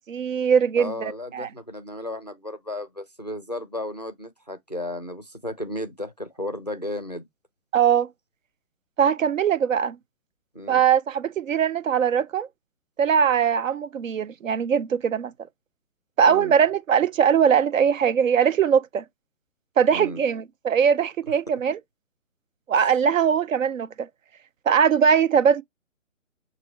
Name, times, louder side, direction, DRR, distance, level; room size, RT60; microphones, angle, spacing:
voice 1, 0.1-1.5 7.7-8.1 9.0-10.0 10.7-12.5 13.0-15.3 16.2-19.0 19.8-21.8 22.7-24.1 24.7-25.6, right 7 dB, 70° right, 0.6 m, -21 dB
voice 2, 0.8-7.2 10.5-10.8 16.2-16.6 19.9-20.2 21.3-21.5, left 1 dB, 35° left, 0.4 m, -34 dB
6.1 x 2.6 x 3.0 m
hypercardioid pair, 175°, 40 cm